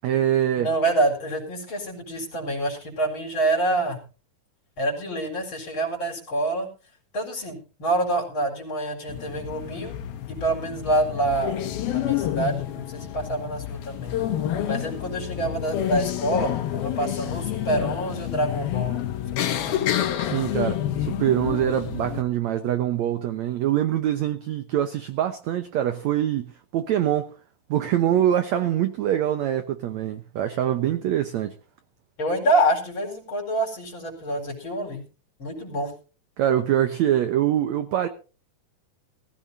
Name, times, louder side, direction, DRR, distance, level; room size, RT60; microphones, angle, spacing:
voice 1, 0.0-0.7 20.2-27.3 27.7-31.5 36.4-38.1, right 11 dB, 75° right, 1.7 m, -24 dB
voice 2, 0.6-4.0 4.8-6.7 7.1-10.0 10.3-14.2 14.7-19.0 19.3-19.8 32.2-35.0 35.4-35.9, right 1 dB, 30° left, 4.8 m, -27 dB
sound 1, 9.1-22.2, left 11 dB, 75° left, 3.3 m, -29 dB
19.0 x 16.0 x 2.7 m
omnidirectional pair, 4.5 m